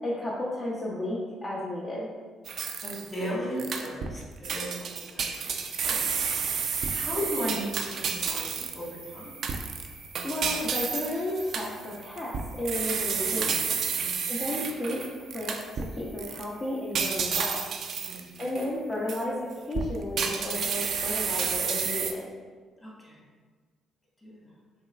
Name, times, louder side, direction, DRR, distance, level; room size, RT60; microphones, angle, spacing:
voice 1, 0.0-2.1 10.2-13.5 14.3-15.0 15.3-17.6 18.4-22.2, left 1 dB, 40° left, -6 dB, 0.7 m, -33 dB
sound 1, 2.5-3.2 3.6-4.2 4.4-8.9 9.4-15.9 16.2-16.4 16.9-18.7 19.1-19.2 19.7-22.1, right 6 dB, 55° right, 0.3 m, -30 dB
voice 2, 2.7-4.8 5.1-5.5 5.8-6.2 6.8-9.4 13.9-14.4 18.0-18.4 22.8-23.2 24.2-24.5, equal, 20° left, -4 dB, 1.4 m, -36 dB
sound 2, 5.4-20.4, right 4 dB, 85° right, 0.8 m, -49 dB
5.7 x 2.3 x 2.3 m, 1.5 s
hypercardioid pair, 45°, 0 cm